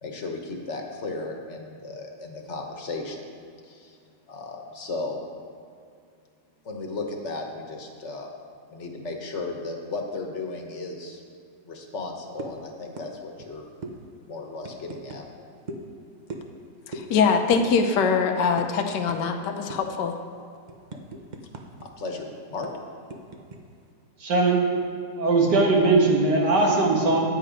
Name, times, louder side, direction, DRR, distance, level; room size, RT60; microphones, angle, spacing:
voice 1, 0.0-3.2 3.6-4.0 4.3-5.2 6.6-8.3 8.7-11.2 11.6-13.7 14.3-15.3 20.9-21.0 21.8-22.2 22.5-22.7, left 3 dB, 45° left, 2 dB, 1.3 m, -35 dB
sound 1, 12.4-12.6 13.0-13.1 13.4-13.5 13.8-14.0 14.6-15.2 15.7-15.9 16.3-16.6 16.9-17.1 17.5-17.7 17.9-18.1 18.6-18.7 19.1-19.2 19.7-20.0 20.4-21.9 22.1-22.2 22.6-23.6, right 2 dB, 45° right, 0.6 m, -38 dB
voice 2, 16.9-20.1, left 5 dB, 85° left, 5 dB, 1.4 m, -23 dB
voice 3, 24.2-24.6 25.2-27.2, right 3 dB, 75° right, -1 dB, 2.1 m, -20 dB
10.0 x 8.6 x 5.0 m, 2.3 s
omnidirectional pair, 1.8 m